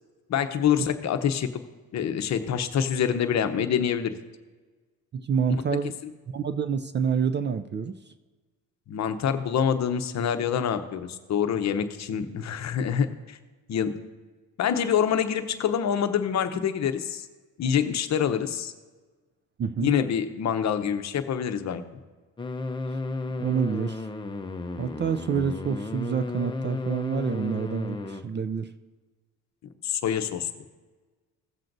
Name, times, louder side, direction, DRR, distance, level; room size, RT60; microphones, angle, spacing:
voice 1, 0.3-1.5 1.9-4.2 5.7-5.8 8.9-13.4 13.7-14.0 14.6-17.2 17.6-18.7 19.8-21.8 29.8-30.5, left 8 dB, 45° left, 9 dB, 0.8 m, -26 dB
voice 2, 5.1-6.0 6.3-8.0 19.6-19.9 23.4-24.1 24.8-28.7, right 6 dB, 30° right, 11 dB, 0.4 m, -27 dB
sound 1, 22.4-28.2, left 3 dB, 15° left, 0.7 m, -33 dB
17.0 x 7.5 x 2.6 m, 1.3 s
cardioid pair, 105°, 38 cm